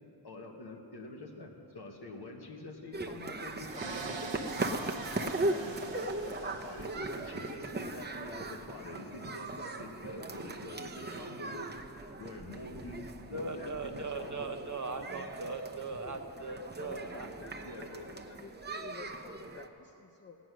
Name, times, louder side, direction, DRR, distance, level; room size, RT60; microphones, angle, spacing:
voice 1, 0.2-5.8 6.2-11.7 11.9-14.5 15.7-15.8 17.6-18.1, left 2 dB, 55° left, 2 dB, 1.7 m, -46 dB
sound 1, 2.9-19.7, right 2 dB, 20° right, 0.8 m, -39 dB
sound 2, 3.7-7.6, right 4 dB, 70° right, 1.0 m, -44 dB
voice 2, 13.3-17.3, right 3 dB, 40° right, 4 dB, 1.1 m, -39 dB
voice 3, 16.8-20.4, left 4 dB, 25° left, 4 dB, 0.7 m, -51 dB
16.5 x 9.3 x 6.2 m, 3.0 s
wide cardioid pair, 75°, 46 cm